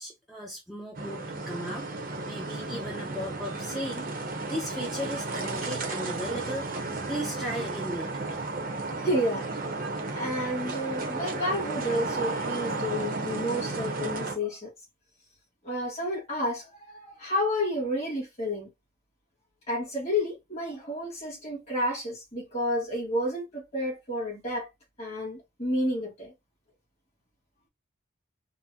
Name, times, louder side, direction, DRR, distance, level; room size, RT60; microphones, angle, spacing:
voice 1, 0.0-4.1 4.5-6.7 7.1-8.4, equal, ahead, 0.6 m, -36 dB
sound 1, 0.9-14.4, right 3 dB, 45° right, 0.7 m, -33 dB
voice 2, 9.0-9.5 10.1-14.7 15.6-18.7 19.7-24.7 25.0-26.3, left 1 dB, 35° left, 1.6 m, -30 dB
3.8 x 2.1 x 2.7 m
head